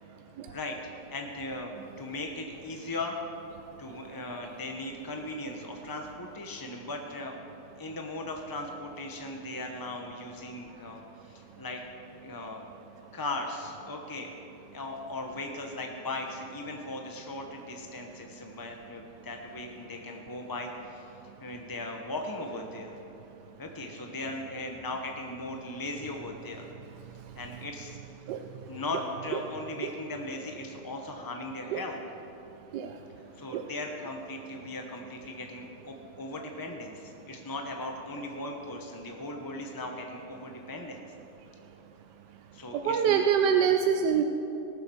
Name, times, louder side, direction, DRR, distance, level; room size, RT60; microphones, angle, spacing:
voice 1, 1.1-3.1 3.8-7.4 7.8-11.8 12.2-12.6 13.1-14.3 14.7-21.1 21.4-22.9 23.6-26.6 27.4-28.0 28.7-32.0 33.4-41.0 42.5-43.2, left 2 dB, 25° left, 2 dB, 0.5 m, -38 dB
voice 2, 42.7-44.2, right 8 dB, 80° right, 5 dB, 1.2 m, -25 dB
19.0 x 7.1 x 6.2 m, 2.9 s
omnidirectional pair, 1.8 m